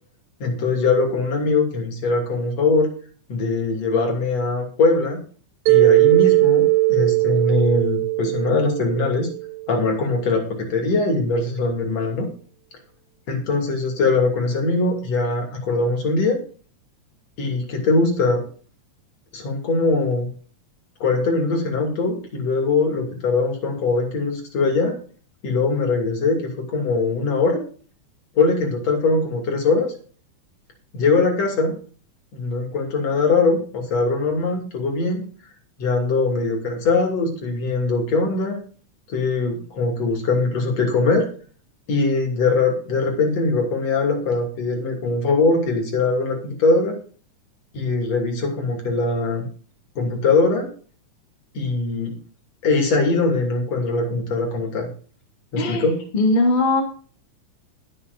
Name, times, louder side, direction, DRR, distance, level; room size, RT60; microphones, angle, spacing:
voice 1, 0.4-2.9 3.3-5.2 5.7-9.3 9.7-12.3 13.3-16.4 17.4-18.4 19.3-20.3 21.0-25.0 25.4-26.4 26.7-27.6 28.4-29.9 30.9-31.7 32.3-35.2 35.8-38.6 39.1-41.3 41.9-47.0 47.7-49.4 50.0-50.7 51.5-52.1 52.6-54.9 55.5-56.0, left 3 dB, 60° left, 1 dB, 3.9 m, -21 dB
Mallet percussion, 5.7-9.8, right 21 dB, 85° right, 2.0 m, -19 dB
voice 2, 56.1-56.8, left 2 dB, 20° left, 2 dB, 1.8 m, -19 dB
20.5 x 6.9 x 2.6 m, 0.40 s
omnidirectional pair, 3.4 m